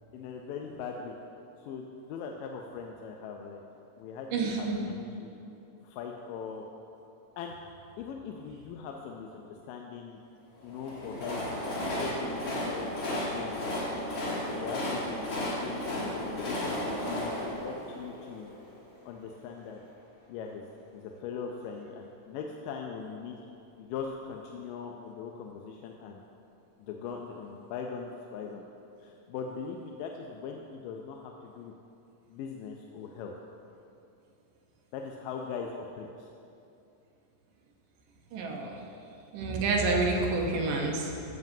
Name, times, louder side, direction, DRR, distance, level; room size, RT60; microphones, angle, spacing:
voice 1, 0.1-1.2 1.6-3.6 4.0-5.4 5.8-6.7 7.4-7.6 8.0-10.2 10.6-11.4 11.7-13.6 14.6-18.5 19.1-19.8 20.3-20.6 20.9-23.4 23.8-26.2 26.8-28.7 29.0-31.7 32.3-33.3 34.9-36.3, left 6 dB, 85° left, 1 dB, 2.2 m, -40 dB
voice 2, 4.3-4.8 38.3-38.8 39.3-41.4, right 3 dB, 80° right, 0 dB, 2.6 m, -29 dB
Train, 10.7-18.8, left 1 dB, 40° left, 2.3 m, -34 dB
14.5 x 7.3 x 2.7 m, 2.7 s
omnidirectional pair, 3.8 m